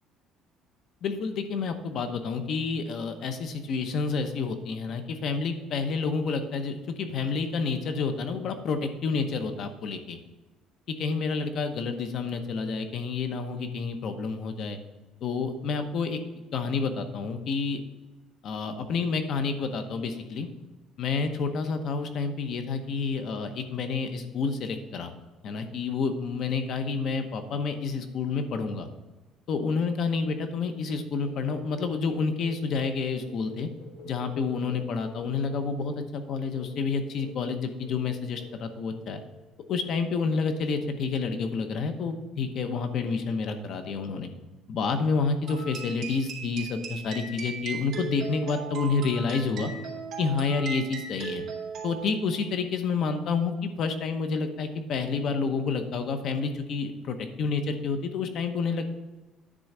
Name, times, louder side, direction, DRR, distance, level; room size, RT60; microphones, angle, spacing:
voice 1, 1.0-10.2 10.9-14.8 15.2-16.2 16.5-17.8 18.4-20.5 21.0-25.1 25.4-28.9 29.5-33.7 34.0-39.2 39.7-44.3 44.7-49.7 50.2-51.4 51.8-58.9, left 4 dB, 50° left, 7 dB, 0.9 m, -29 dB
sound 1, 31.3-32.7 33.2-36.0 36.5-36.8 37.2-37.5 37.8-38.1 38.4-38.7 39.1-39.3, left 1 dB, 70° left, 1.6 m, -48 dB
sound 2, 45.5-52.3, right 6 dB, 45° right, 3.1 m, -38 dB
10.0 x 3.9 x 7.2 m, 1.2 s
cardioid pair, 150°, 0 cm